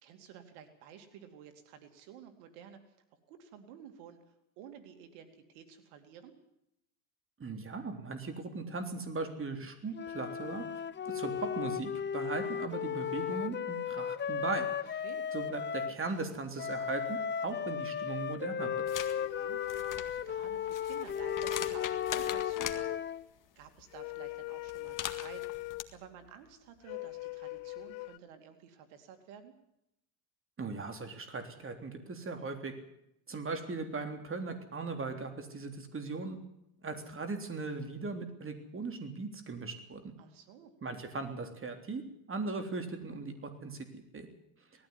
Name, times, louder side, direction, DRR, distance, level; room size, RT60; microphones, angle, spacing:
voice 1, 0.0-2.8 3.3-6.3 15.0-15.2 19.2-19.6 20.0-23.0 23.6-29.5 40.2-40.7, right 8 dB, 85° right, 7 dB, 2.7 m, -53 dB
voice 2, 7.4-10.6 11.0-15.0 15.3-18.7 30.6-32.7 33.3-36.4 36.8-40.1 40.8-42.0 42.3-44.3, right 3 dB, 25° right, 6 dB, 3.5 m, -38 dB
sound 1, 9.9-16.0 16.6-23.2, left 7 dB, 25° left, 0.7 m, -36 dB
sound 2, 18.6-20.7 21.0-23.1 23.9-25.9 26.9-28.2, left 20 dB, 70° left, 0.8 m, -39 dB
sound 3, 18.9-19.1 19.6-22.8 24.7-25.8, left 9 dB, 40° left, 2.0 m, -41 dB
19.0 x 14.5 x 9.7 m, 0.80 s
cardioid pair, 110°, 48 cm